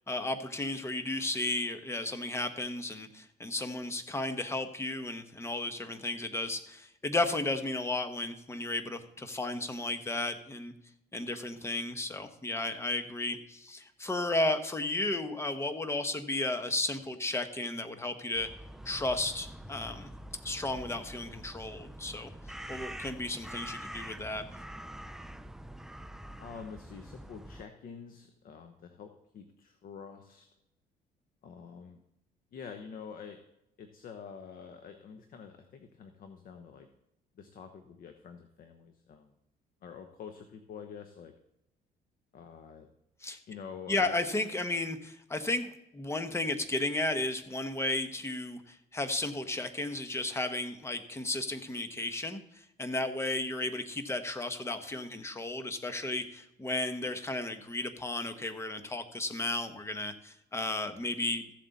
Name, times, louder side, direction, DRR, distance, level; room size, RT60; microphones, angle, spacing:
voice 1, 0.1-10.7 11.1-18.5 18.8-20.1 20.4-22.3 22.7-24.4 43.2-43.4 43.9-61.4, left 2 dB, 15° left, 8 dB, 1.1 m, -34 dB
sound 1, 18.3-27.6, right 1 dB, 5° right, 0.4 m, -45 dB
voice 2, 26.4-30.5 31.4-32.0 32.5-33.4 33.8-36.9 37.3-39.3 39.8-41.3 42.3-42.9 43.5-44.2, left 6 dB, 55° left, 7 dB, 1.0 m, -47 dB
14.5 x 7.5 x 4.1 m, 0.83 s
cardioid pair, 110°, 17 cm